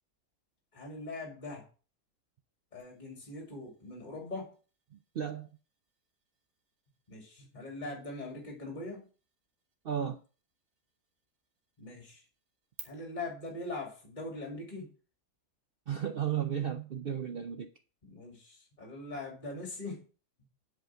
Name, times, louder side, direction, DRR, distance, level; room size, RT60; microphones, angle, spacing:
voice 1, 0.7-1.7 2.7-4.5 7.1-9.1 11.8-12.2 12.8-14.9 18.0-20.0, left 2 dB, 25° left, 2.5 m, -41 dB
sound 1, 2.8-12.8, right 6 dB, 55° right, 1.7 m, -59 dB
voice 2, 4.9-5.5 9.8-10.2 15.9-17.7, right 9 dB, 80° right, 0.5 m, -34 dB
8.0 x 5.1 x 7.4 m
omnidirectional pair, 1.7 m